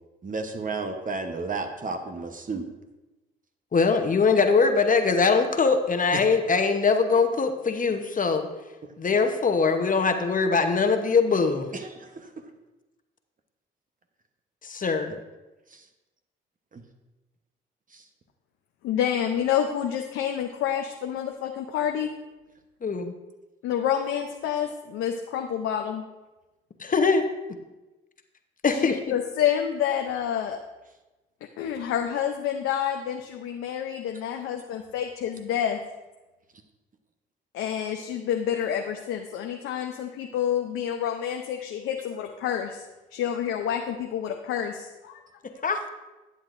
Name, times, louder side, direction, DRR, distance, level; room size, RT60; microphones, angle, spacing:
voice 1, 0.2-2.6 6.1-6.2 11.7-12.1 16.7-16.8 17.9-18.0, right 4 dB, 40° right, 5 dB, 1.0 m, -32 dB
voice 2, 3.7-8.5 9.0-11.7 14.6-15.1 22.8-23.0 26.8-27.3 28.6-29.0 45.6-45.9, left 4 dB, 40° left, 7 dB, 0.9 m, -22 dB
voice 3, 18.8-22.1 23.6-26.0 28.7-30.6 31.6-35.8 37.5-42.8 43.1-45.2, left 9 dB, 80° left, 4 dB, 0.6 m, -28 dB
11.0 x 8.0 x 2.6 m, 1.1 s
supercardioid pair, 55°, 21 cm